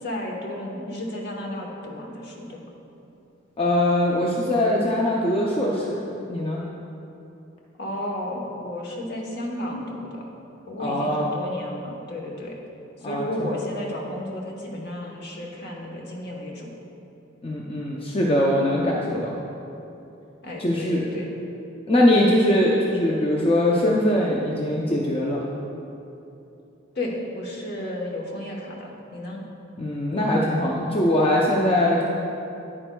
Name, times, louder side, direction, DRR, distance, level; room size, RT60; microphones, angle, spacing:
voice 1, 0.0-2.7 7.8-10.3 10.7-12.6 13.0-16.7 20.4-21.3 26.9-29.4, left 1 dB, 55° left, -1 dB, 1.1 m, -33 dB
voice 2, 3.6-6.0 6.3-6.6 10.8-11.3 13.0-13.3 17.4-19.4 20.6-21.0 21.9-25.4 29.8-32.0, left 1 dB, 25° left, -3 dB, 0.5 m, -21 dB
10.0 x 8.6 x 2.3 m, 2.9 s
head